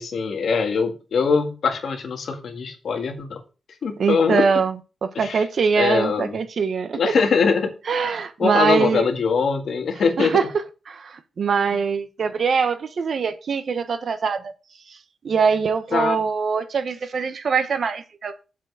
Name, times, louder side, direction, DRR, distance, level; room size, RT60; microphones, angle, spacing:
voice 1, 0.0-3.4 3.8-4.4 5.2-5.4 5.8-6.4 6.9-7.7 8.4-10.4 15.9-16.2, left 5 dB, 70° left, 1.9 m, -22 dB
voice 2, 4.0-4.8 5.0-7.1 7.9-9.1 10.2-10.5 10.9-14.5 14.9-15.0 15.2-18.3, right 5 dB, 55° right, 1.0 m, -23 dB
7.4 x 5.1 x 7.0 m
wide cardioid pair, 145°, 0 cm